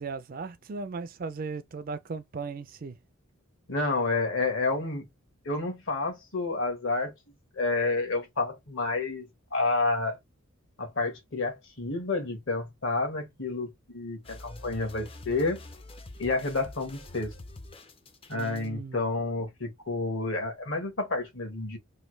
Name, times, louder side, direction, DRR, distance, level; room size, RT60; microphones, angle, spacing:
voice 1, 0.0-3.0 18.3-19.1, right 4 dB, 40° right, 0.4 m, -37 dB
voice 2, 3.7-5.1 5.4-7.1 7.5-10.2 10.8-15.6 16.2-17.3 18.3-21.8, left 3 dB, 60° left, 1.3 m, -30 dB
sound 1, 14.2-18.7, left 2 dB, 25° left, 0.5 m, -46 dB
3.2 x 2.2 x 3.1 m
head